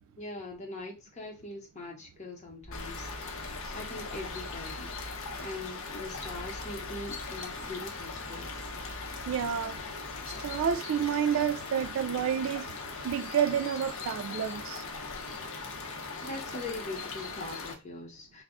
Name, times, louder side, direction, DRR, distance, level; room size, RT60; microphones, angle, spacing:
voice 1, 0.2-3.4 3.7-4.9 5.4-8.5 16.2-18.4, left 2 dB, 35° left, 0.8 m, -42 dB
sound 1, 2.6-10.7, right 1 dB, 15° left, 0.5 m, -47 dB
sound 2, 2.7-17.7, left 4 dB, 65° left, 0.6 m, -40 dB
voice 2, 9.3-9.8 10.4-12.8 13.0-14.8, right 8 dB, 65° right, 0.3 m, -29 dB
2.3 x 2.0 x 3.5 m
head